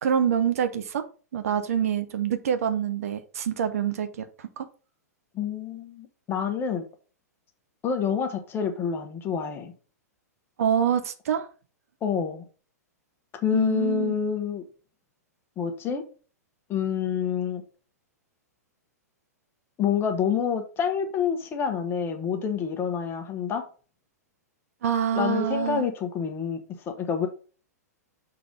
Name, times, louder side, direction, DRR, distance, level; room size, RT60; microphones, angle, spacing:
voice 1, 0.0-1.0 1.3-4.7 10.6-11.5 13.5-14.1 24.8-25.9, right 8 dB, 60° right, 9 dB, 0.9 m, -26 dB
voice 2, 5.3-6.8 7.8-9.7 12.0-12.4 13.3-14.6 15.6-16.0 16.7-17.6 19.8-23.6 25.1-27.3, left 7 dB, 25° left, 6 dB, 1.3 m, -27 dB
6.6 x 3.9 x 5.3 m, 0.37 s
figure-of-eight pair, 105°, 9 cm